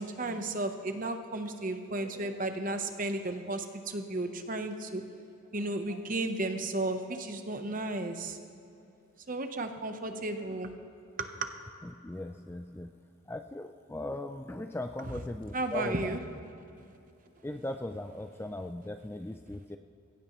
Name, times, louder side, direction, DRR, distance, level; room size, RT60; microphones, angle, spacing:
voice 1, 0.0-5.0 5.5-8.4 9.3-10.7 11.2-11.5 15.5-16.2, right 2 dB, 40° right, 7 dB, 0.9 m, -34 dB
voice 2, 11.8-12.9 13.3-16.1 17.4-19.8, left 1 dB, 10° left, 7 dB, 0.3 m, -38 dB
21.5 x 16.5 x 3.1 m, 2.8 s
head